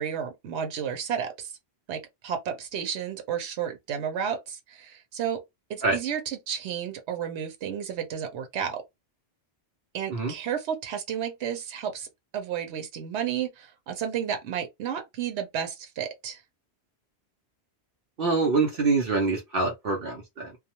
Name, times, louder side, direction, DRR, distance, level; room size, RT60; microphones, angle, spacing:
voice 1, 0.0-1.5 1.9-5.4 5.7-8.8 9.9-12.1 12.3-16.4, right 8 dB, 90° right, 0.9 m, -32 dB
voice 2, 18.2-20.6, right 3 dB, 60° right, 0.8 m, -25 dB
2.3 x 2.1 x 2.8 m
omnidirectional pair, 1.1 m